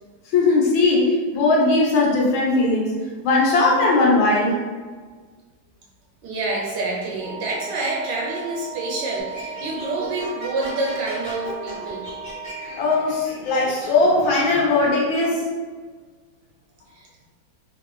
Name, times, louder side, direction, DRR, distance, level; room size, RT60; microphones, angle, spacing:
voice 1, 0.3-2.9 3.2-4.6 12.8-15.4, left 3 dB, 80° left, -3 dB, 1.5 m, -19 dB
voice 2, 6.2-12.1 16.9-17.1, right 2 dB, 75° right, -2 dB, 1.1 m, -27 dB
Wind instrument woodwind instrument, 7.1-12.9, right 4 dB, 60° left, 1.5 m, -36 dB
sound 1, 9.3-14.9, equal, 40° left, 0.4 m, -37 dB
3.5 x 2.1 x 3.0 m, 1.5 s
omnidirectional pair, 2.1 m